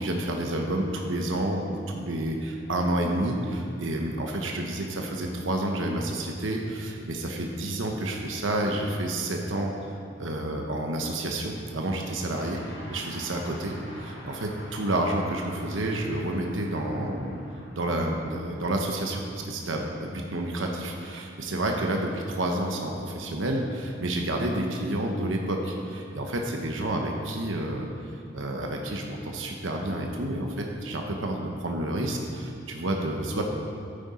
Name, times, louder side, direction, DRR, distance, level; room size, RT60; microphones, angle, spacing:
voice 1, 0.0-9.7 10.2-12.6 12.9-17.4 17.8-27.9 28.3-33.4, right 1 dB, 85° right, 1 dB, 1.0 m, -29 dB
sound 1, 12.3-21.8, left 1 dB, 65° left, 1.9 m, -48 dB
11.5 x 8.9 x 4.2 m, 2.5 s
head